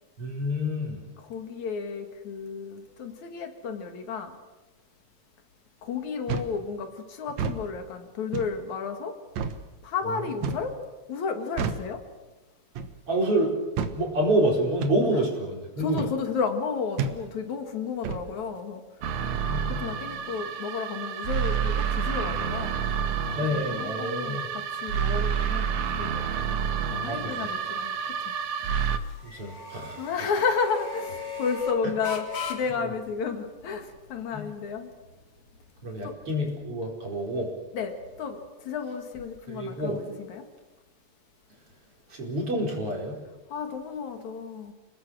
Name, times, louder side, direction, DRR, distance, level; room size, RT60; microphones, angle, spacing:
voice 1, 0.2-1.0 10.1-10.3 13.1-13.6 14.0-16.0 19.1-19.7 23.4-24.4 27.1-27.3 29.2-30.0 31.8-31.9 32.8-32.9 34.3-34.5 35.8-37.5 39.5-40.0 42.1-43.2, right 1 dB, 45° right, -1 dB, 5.6 m, -28 dB
voice 2, 1.2-4.4 5.8-9.1 9.8-10.7 11.1-12.0 15.8-18.8 19.8-22.8 23.5-28.2 30.0-34.9 36.0-36.1 37.7-40.5 43.5-44.7, left 5 dB, 70° left, 6 dB, 3.5 m, -32 dB
sound 1, 6.3-6.6 7.3-7.6 8.3-8.6 9.4-9.6 10.4-10.7 11.6-11.9 12.8-13.0 13.8-14.0 14.8-15.0 16.0-16.2 17.0-17.2 18.0-18.3, right 5 dB, 70° right, 2.4 m, -30 dB
sound 2, 19.0-29.0, right 7 dB, 85° right, 2.6 m, -29 dB
sound 3, 23.1-38.5, left 4 dB, 55° left, 3.7 m, -43 dB
30.0 x 19.5 x 6.4 m, 1.1 s
omnidirectional pair, 3.4 m